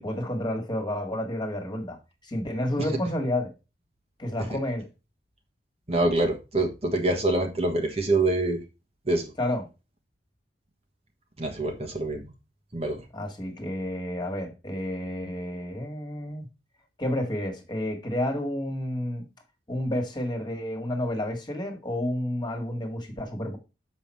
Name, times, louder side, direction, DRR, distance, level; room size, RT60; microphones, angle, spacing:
voice 1, 0.0-3.5 4.2-4.9 9.4-9.6 13.1-16.5 17.0-19.3 19.7-23.6, left 1 dB, 25° left, 1.8 m, -30 dB
voice 2, 5.9-8.6 9.1-9.3 11.4-12.3 12.7-13.0, right 2 dB, 35° right, 1.3 m, -25 dB
7.1 x 5.4 x 4.4 m
head